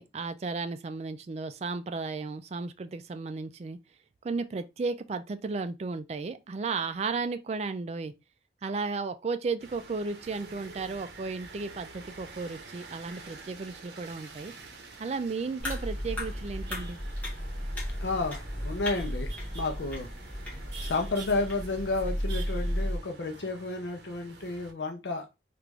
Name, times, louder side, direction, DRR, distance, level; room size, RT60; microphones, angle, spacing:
voice 1, 0.0-3.8 4.2-8.1 8.6-14.5 15.0-17.0, right 4 dB, 35° right, 0.3 m, -34 dB
sound 1, 9.6-24.7, right 4 dB, 70° right, 0.7 m, -48 dB
sound 2, 15.6-23.0, equal, 10° left, 1.0 m, -34 dB
voice 2, 18.0-20.1 20.8-25.2, left 3 dB, 80° left, 0.6 m, -31 dB
3.1 x 2.5 x 3.3 m
head